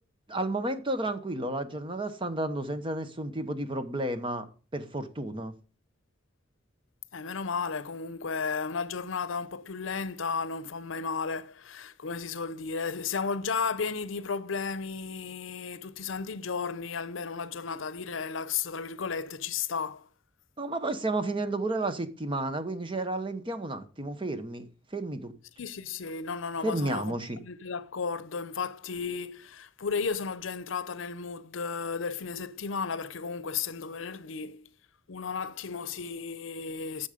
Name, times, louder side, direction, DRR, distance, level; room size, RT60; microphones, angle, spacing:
voice 1, 0.3-4.5 4.7-5.5 20.6-24.6 24.9-25.3 26.6-27.4, right 2 dB, 25° right, 1.0 m, -32 dB
voice 2, 7.1-20.1 25.6-34.7 35.1-37.1, left 5 dB, 75° left, 0.7 m, -34 dB
10.5 x 7.0 x 5.1 m
head